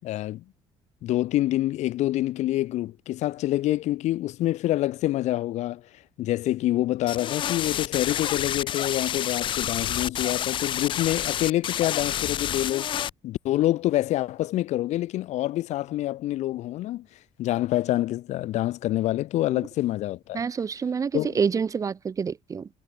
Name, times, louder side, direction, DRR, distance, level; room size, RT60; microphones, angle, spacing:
voice 1, 0.0-0.4 1.0-5.8 6.2-12.9 13.2-17.1 17.4-20.4 21.1-21.3, left 15 dB, 70° left, 4.5 m, -26 dB
sound 1, 7.1-13.1, left 10 dB, 45° left, 0.5 m, -29 dB
voice 2, 20.3-22.7, right 6 dB, 25° right, 0.9 m, -27 dB
cardioid pair, 130°, 12 cm